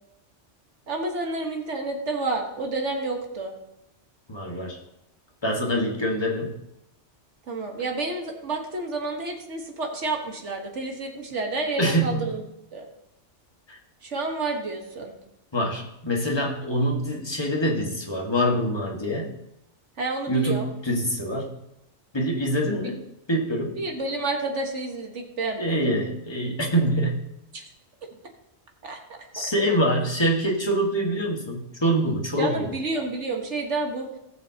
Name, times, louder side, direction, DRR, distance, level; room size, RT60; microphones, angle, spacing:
voice 1, 0.9-3.5 7.5-12.4 12.7-12.9 14.0-15.2 20.0-20.7 23.8-25.8 27.5-27.6 28.8-29.0 29.4-29.5 32.4-34.1, right 3 dB, 70° right, 2 dB, 1.7 m, -29 dB
voice 2, 4.3-4.8 5.4-6.6 11.8-12.2 13.7-13.8 15.5-19.3 20.3-21.5 22.1-23.0 23.3-23.8 25.6-27.2 29.3-32.7, equal, 20° left, -1 dB, 1.6 m, -25 dB
18.5 x 6.8 x 2.8 m, 0.83 s
omnidirectional pair, 1.2 m